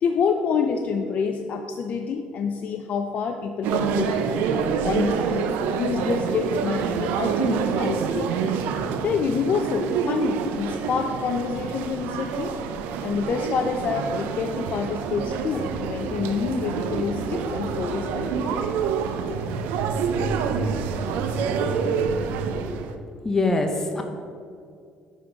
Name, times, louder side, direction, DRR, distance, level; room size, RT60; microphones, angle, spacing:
voice 1, 0.0-4.3 4.8-5.5 5.7-8.5 9.0-12.5 13.0-18.7, left 6 dB, 50° left, 5 dB, 0.5 m, -27 dB
sound 1, 3.6-22.9, right 6 dB, 85° right, 0.6 m, -27 dB
voice 2, 21.4-22.2 22.5-22.8 23.2-24.0, left 2 dB, 15° left, 3 dB, 0.7 m, -26 dB
9.3 x 3.9 x 6.2 m, 2.3 s
cardioid pair, 105°, 3 cm